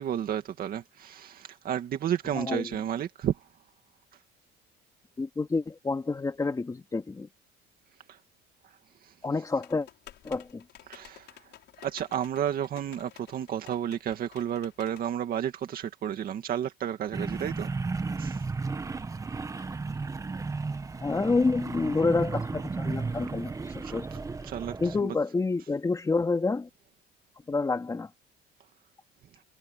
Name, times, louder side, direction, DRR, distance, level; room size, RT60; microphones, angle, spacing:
voice 1, 0.0-3.4 8.1-8.2 9.0-9.1 10.9-11.3 11.8-18.4 23.8-24.0 24.4-24.8, right 10 dB, 50° right, 2.2 m, -32 dB
voice 2, 2.3-2.8 5.2-7.3 9.2-9.9 10.2-10.6 21.0-24.3 24.8-26.7 27.5-28.1, left 3 dB, 15° left, 2.8 m, -28 dB
sound 1, 9.6-15.1, left 12 dB, 60° left, 5.5 m, -52 dB
sound 2, 17.1-25.0, right 4 dB, 15° right, 1.2 m, -34 dB
cardioid pair, 135°, 20 cm